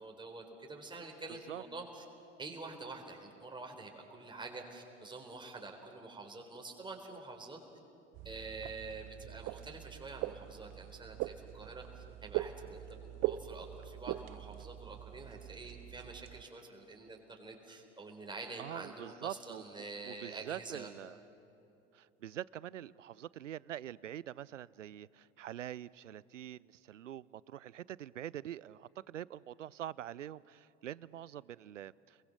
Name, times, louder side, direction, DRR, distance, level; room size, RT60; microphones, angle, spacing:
voice 1, 0.0-2.0 2.4-7.6 8.2-20.9, right 3 dB, 15° right, 1 dB, 3.9 m, -47 dB
sound 1, 8.1-16.4, right 15 dB, 45° right, 0.7 m, -42 dB
voice 2, 18.6-21.2 21.9-32.2, right 11 dB, 80° right, 22 dB, 0.5 m, -45 dB
30.0 x 22.0 x 6.6 m, 2.9 s
figure-of-eight pair, 75°, 37 cm